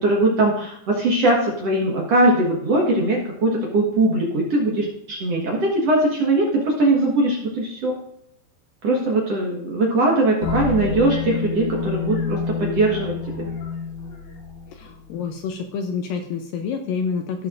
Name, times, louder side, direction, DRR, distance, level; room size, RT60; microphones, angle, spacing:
voice 1, 0.0-7.9 8.8-13.5, right 2 dB, 50° right, -2 dB, 2.1 m, -20 dB
sound 1, 10.4-15.1, left 5 dB, 55° left, 2.4 m, -28 dB
voice 2, 14.7-17.5, left 5 dB, 75° left, 4 dB, 2.1 m, -28 dB
17.5 x 6.4 x 2.6 m, 0.72 s
omnidirectional pair, 4.5 m